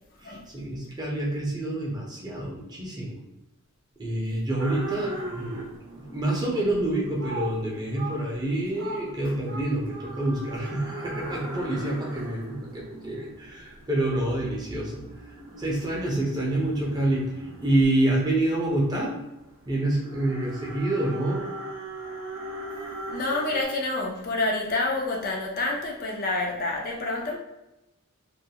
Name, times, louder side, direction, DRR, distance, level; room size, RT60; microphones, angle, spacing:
voice 1, 0.2-3.2 4.0-5.6 6.1-15.0 15.6-17.2 17.6-19.1 19.7-21.5, right 1 dB, 20° right, -3 dB, 0.5 m, -27 dB
sound 1, 4.6-23.6, right 2 dB, 70° right, 0.6 m, -39 dB
voice 2, 23.1-27.4, left 2 dB, 40° left, 0 dB, 0.4 m, -28 dB
2.3 x 2.3 x 2.7 m, 0.95 s
head